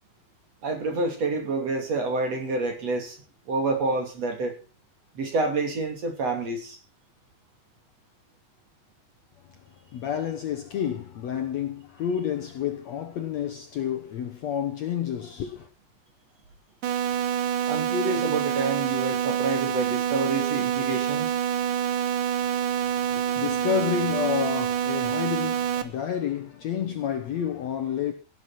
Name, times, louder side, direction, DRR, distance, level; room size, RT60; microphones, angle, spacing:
voice 1, 0.6-3.2 3.5-4.5 5.2-6.8 17.7-21.3, right 3 dB, 45° right, 3.7 m, -28 dB
voice 2, 9.9-15.7 22.8-28.1, left 8 dB, 65° left, 1.9 m, -30 dB
sound 1, 16.8-25.8, right 9 dB, 70° right, 2.6 m, -26 dB
17.0 x 8.6 x 5.9 m
omnidirectional pair, 4.2 m